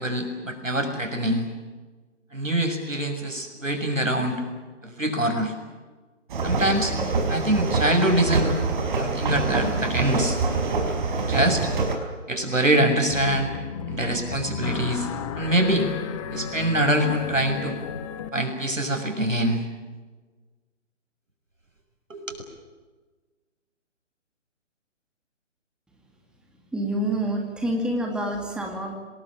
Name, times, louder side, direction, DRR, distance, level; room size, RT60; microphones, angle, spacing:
voice 1, 0.0-1.5 2.3-4.3 4.8-5.5 6.4-6.9 7.3-8.5 9.0-10.4 11.2-11.7 12.3-13.5 13.9-15.1 15.4-15.9 16.3-17.8 18.3-19.6 22.1-22.4, right 1 dB, 80° right, 5 dB, 6.8 m, -24 dB
sound 1, 6.3-12.0, right 3 dB, 40° right, 5.4 m, -25 dB
sound 2, 13.1-18.3, left 7 dB, 25° left, 1.8 m, -33 dB
voice 2, 26.7-28.9, right 1 dB, ahead, 2 dB, 2.4 m, -27 dB
27.5 x 19.5 x 8.8 m, 1.3 s
figure-of-eight pair, 140°, 38 cm